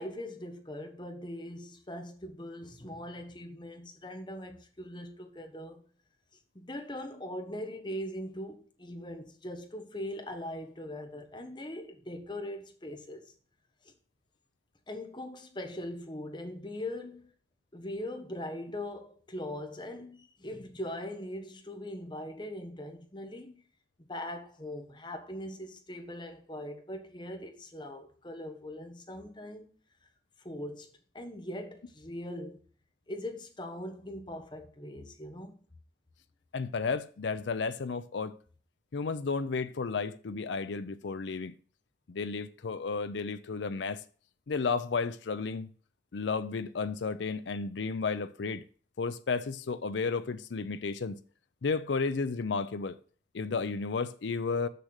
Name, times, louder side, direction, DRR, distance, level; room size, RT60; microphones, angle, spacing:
voice 1, 0.0-5.8 6.5-13.3 13.8-13.9 14.9-17.3 17.7-23.6 24.1-29.7 30.4-32.6 33.1-35.6, left 1 dB, 25° left, 1.2 m, -41 dB
voice 2, 36.5-38.3 38.9-41.5 42.1-44.0 44.5-45.7 46.1-48.6 49.0-51.2 51.6-53.0 53.3-54.7, left 4 dB, 90° left, 0.5 m, -32 dB
6.7 x 6.6 x 6.4 m
head